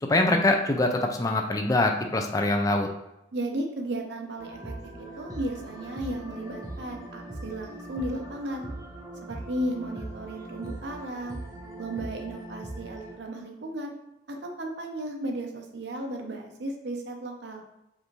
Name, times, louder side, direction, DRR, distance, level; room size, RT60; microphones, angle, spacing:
voice 1, 0.0-2.9, left 2 dB, 20° left, 3 dB, 0.3 m, -24 dB
voice 2, 3.3-8.6 9.3-11.4 11.8-13.9 14.3-17.6, right 1 dB, 65° right, 3 dB, 0.7 m, -34 dB
sound 1, 4.4-13.1, right 2 dB, 20° right, 0.6 m, -40 dB
5.2 x 2.5 x 3.1 m, 0.90 s
head